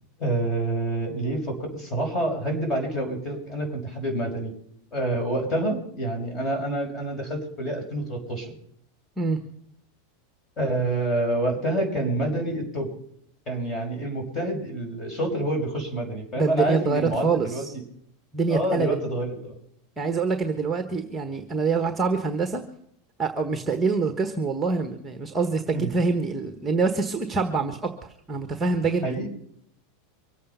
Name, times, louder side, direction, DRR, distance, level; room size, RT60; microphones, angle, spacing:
voice 1, 0.2-4.5 4.9-8.5 10.6-12.9 13.5-17.6 18.5-19.5 25.7-25.9 29.0-29.3, right 1 dB, 25° left, 3 dB, 5.7 m, -27 dB
voice 2, 16.4-17.7 18.3-19.0 20.0-22.6 23.2-29.1, right 4 dB, 10° right, 7 dB, 1.3 m, -25 dB
24.5 x 8.5 x 5.6 m, 0.69 s
supercardioid pair, 145°, 0 cm